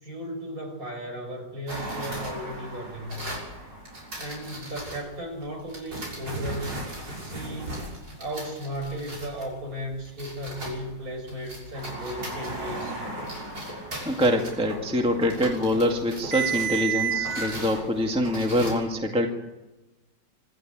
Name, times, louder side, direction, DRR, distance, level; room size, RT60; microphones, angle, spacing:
voice 1, 0.0-3.3 4.2-6.9 7.2-13.0, equal, 50° right, 3 dB, 5.9 m, -35 dB
sound 1, 1.7-5.0 5.7-10.9 11.2-18.7, right 4 dB, 70° right, 7.2 m, -34 dB
voice 2, 14.1-19.3, equal, 5° right, 2 dB, 1.9 m, -24 dB
25.5 x 13.0 x 9.1 m, 1.1 s
omnidirectional pair, 2.0 m